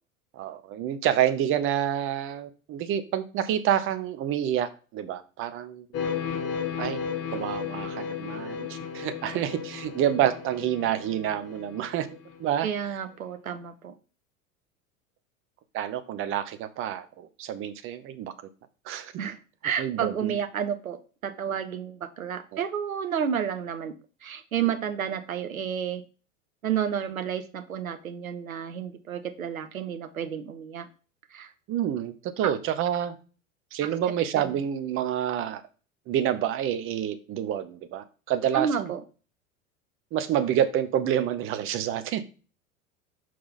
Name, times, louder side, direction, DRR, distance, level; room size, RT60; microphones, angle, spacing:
voice 1, 0.3-5.9 6.8-7.0 7.3-12.1 12.4-13.0 15.7-18.3 18.9-19.1 19.8-20.4 22.5-22.6 24.6-24.7 31.7-33.2 33.7-35.6 36.1-38.9 40.1-42.2, right 10 dB, 30° right, 11 dB, 0.8 m, -28 dB
sound 1, 5.9-12.6, left 7 dB, 35° left, 1.7 m, -34 dB
voice 2, 12.6-13.9 19.2-19.4 19.6-23.9 24.2-26.0 26.6-30.9 31.3-31.5 32.4-32.5 34.3-34.5 38.5-39.0, right 8 dB, 80° right, 9 dB, 0.7 m, -31 dB
5.9 x 4.6 x 4.0 m, 0.35 s
figure-of-eight pair, 80°, 41 cm